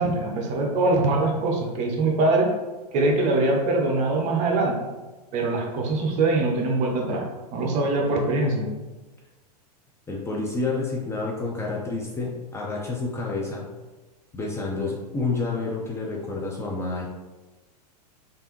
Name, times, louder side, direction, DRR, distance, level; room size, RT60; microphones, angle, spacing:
voice 1, 0.0-2.5 2.9-4.8 5.3-8.7, right 2 dB, 35° right, 0 dB, 0.7 m, -23 dB
voice 2, 10.1-13.7 14.3-17.1, left 3 dB, 10° left, -3 dB, 0.4 m, -29 dB
3.3 x 2.6 x 2.9 m, 1.2 s
figure-of-eight pair, 95°, 21 cm